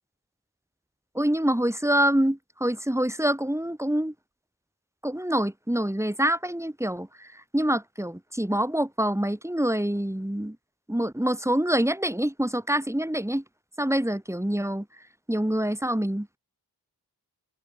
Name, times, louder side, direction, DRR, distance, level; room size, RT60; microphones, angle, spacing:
voice 1, 1.1-4.1 5.0-10.6 10.9-13.4 13.8-14.8 15.3-16.3, right 1 dB, 5° right, 3.1 m, -26 dB
open air
cardioid pair, 55°, 40 cm